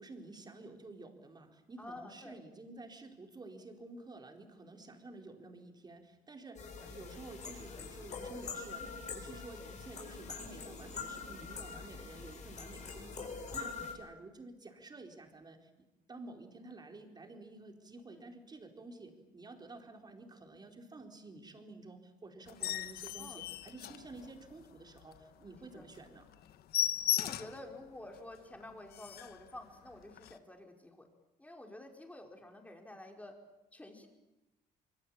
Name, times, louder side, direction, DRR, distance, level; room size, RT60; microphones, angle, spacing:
voice 1, 0.0-26.3, right 2 dB, 25° right, 4 dB, 4.5 m, -51 dB
voice 2, 1.8-2.4 6.8-6.9 18.1-18.3 23.2-23.4 25.7-25.9 27.2-31.1 31.4-33.4 33.7-34.1, left 1 dB, 10° left, 3 dB, 5.2 m, -50 dB
sound 1, 6.6-13.9, left 5 dB, 45° left, 7.3 m, -44 dB
sound 2, 22.5-24.6 25.0-25.2 25.5-25.6 25.9-26.1 26.3-27.7 28.1-28.2 28.6-28.7 28.9-29.4 30.2-30.3, left 11 dB, 65° left, 1.4 m, -36 dB
25.5 x 23.5 x 8.8 m, 0.96 s
cardioid pair, 110°, 17 cm